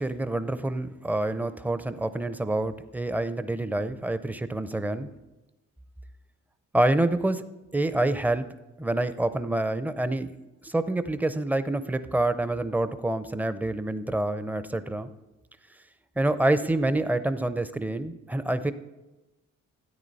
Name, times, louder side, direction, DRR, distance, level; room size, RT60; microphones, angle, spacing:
voice 1, 0.0-5.1 6.7-7.4 7.7-8.5 8.8-10.3 10.6-15.1 16.2-18.7, right 2 dB, 5° right, 12 dB, 0.5 m, -27 dB
13.5 x 9.1 x 4.1 m, 1.0 s
cardioid pair, 90°, 30 cm